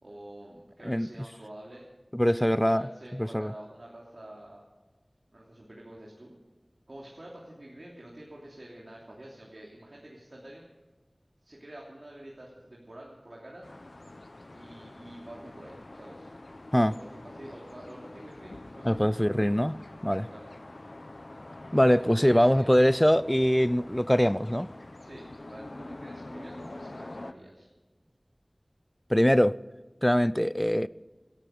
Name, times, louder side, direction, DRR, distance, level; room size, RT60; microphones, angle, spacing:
voice 1, 0.0-1.8 2.3-4.6 5.3-6.4 6.9-10.6 11.4-13.7 14.5-16.3 16.7-19.0 20.3-20.5 22.0-22.8 25.0-27.7, right 1 dB, 65° right, 3.0 m, -47 dB
voice 2, 2.1-2.8 3.2-3.5 16.7-16.9 18.8-20.3 21.7-24.7 29.1-29.6 30.0-30.9, equal, 10° left, 0.4 m, -23 dB
sound 1, 13.6-27.3, left 2 dB, 65° left, 0.8 m, -45 dB
17.5 x 13.5 x 5.3 m
wide cardioid pair, 45°, 0 cm